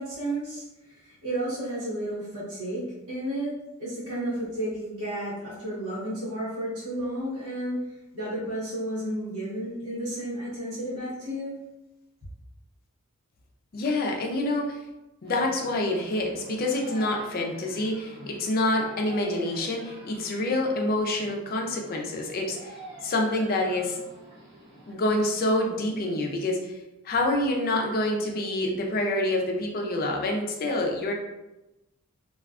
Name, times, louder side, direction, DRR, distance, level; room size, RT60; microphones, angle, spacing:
voice 1, 0.0-7.9 8.1-11.6, right 1 dB, 85° right, -8 dB, 1.0 m, -32 dB
voice 2, 13.7-14.8 15.2-24.0 24.9-26.8 27.0-31.1, left 1 dB, 45° left, 1 dB, 0.4 m, -27 dB
sound 1, 15.2-24.9, right 1 dB, 20° right, 0.8 m, -47 dB
2.3 x 2.3 x 2.3 m, 0.99 s
head